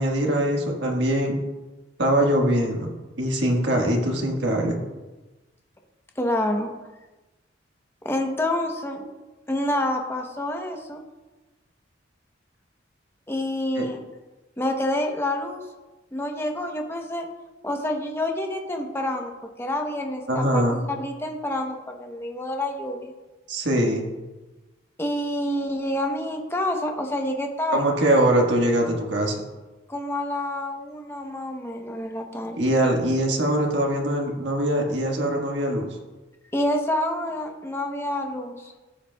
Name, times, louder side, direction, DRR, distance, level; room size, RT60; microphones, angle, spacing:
voice 1, 0.0-1.3 2.0-4.8 13.8-13.9 20.3-20.8 23.5-24.0 27.7-29.4 32.6-35.9, right 1 dB, 65° right, 0 dB, 1.5 m, -22 dB
voice 2, 6.2-6.7 8.0-9.1 9.5-11.0 13.3-14.0 14.6-15.6 16.1-17.3 17.6-19.3 19.6-23.1 25.0-27.9 29.9-32.6 36.5-38.7, left 1 dB, 15° left, 2 dB, 0.8 m, -28 dB
14.5 x 8.1 x 2.3 m, 1.1 s
head